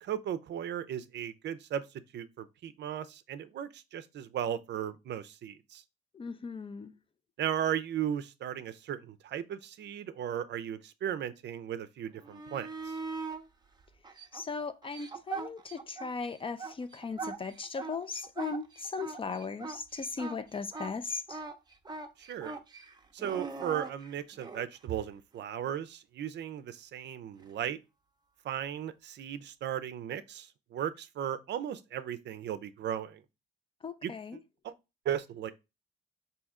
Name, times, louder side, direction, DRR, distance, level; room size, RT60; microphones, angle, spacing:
voice 1, 0.0-1.9 2.1-5.8 7.4-13.0 22.2-22.5 23.1-27.8 28.4-33.2 34.0-34.1 34.6-34.7 35.0-35.5, right 10 dB, 60° right, 0.5 m, -36 dB
voice 2, 6.1-6.9 14.3-21.4 33.8-34.4, left 4 dB, 25° left, 0.4 m, -38 dB
sound 1, 12.2-13.4 14.0-16.1 16.4-24.6 27.4-27.5, right 4 dB, 20° right, 0.6 m, -41 dB
4.1 x 2.8 x 3.6 m
cardioid pair, 90°, 20 cm